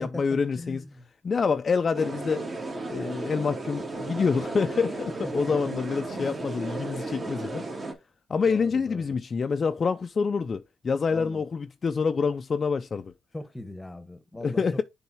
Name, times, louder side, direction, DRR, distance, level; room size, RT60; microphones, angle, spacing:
voice 1, 0.0-0.8 1.2-2.4 2.9-7.6 8.3-13.1 14.4-14.8, left 5 dB, 40° left, 0.4 m, -27 dB
voice 2, 0.6-1.1 5.2-5.7 6.1-6.4 8.5-9.2 11.1-11.4 13.3-14.8, left 1 dB, 10° left, 1.1 m, -40 dB
sound 1, 1.9-7.9, right 3 dB, 35° right, 1.8 m, -34 dB
7.0 x 3.5 x 4.7 m
cardioid pair, 90°, 0 cm